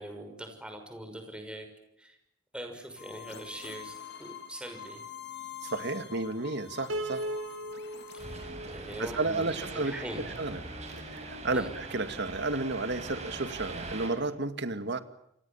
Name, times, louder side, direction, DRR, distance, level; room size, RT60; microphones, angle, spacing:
voice 1, 0.0-1.7 2.0-2.1 2.5-5.0 8.1-9.4 9.7-10.2 11.5-11.7, right 1 dB, 5° right, 5 dB, 6.1 m, -42 dB
sound 1, 3.0-8.5, left 9 dB, 60° left, 3.7 m, -46 dB
voice 2, 5.6-7.2 9.0-9.9 10.4-10.6 11.1-15.0, right 3 dB, 60° right, 10 dB, 2.3 m, -32 dB
Piano, 6.9-10.1, right 1 dB, 75° right, 2.4 m, -38 dB
sound 2, 8.2-14.1, right 2 dB, 35° right, 7.7 m, -41 dB
29.0 x 25.0 x 7.3 m, 0.78 s
head